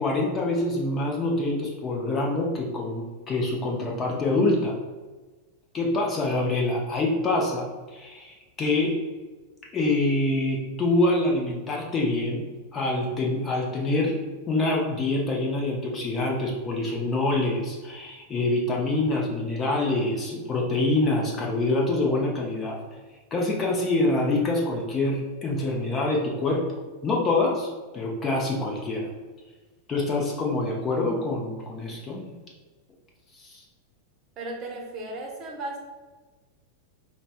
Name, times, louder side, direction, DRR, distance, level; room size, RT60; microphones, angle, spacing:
voice 1, 0.0-4.7 5.7-7.7 7.9-9.0 9.7-12.5 12.7-14.2 14.5-22.8 23.3-26.7 27.0-27.7 27.9-29.1 29.9-32.3 33.4-33.6, left 2 dB, 25° left, -1 dB, 0.7 m, -25 dB
voice 2, 34.4-35.8, right 2 dB, 30° right, 0 dB, 0.8 m, -35 dB
5.2 x 2.2 x 2.5 m, 1.3 s
figure-of-eight pair, 90°, 0 cm